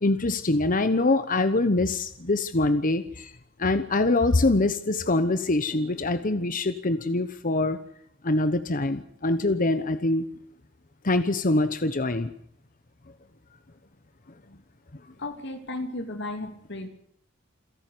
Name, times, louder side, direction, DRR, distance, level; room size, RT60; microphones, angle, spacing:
voice 1, 0.0-3.3 3.6-7.8 8.2-10.3 11.0-12.3, left 2 dB, 45° left, 11 dB, 1.1 m, -24 dB
voice 2, 15.2-16.9, left 2 dB, 60° left, 7 dB, 3.0 m, -34 dB
28.0 x 11.5 x 9.6 m, 0.69 s
head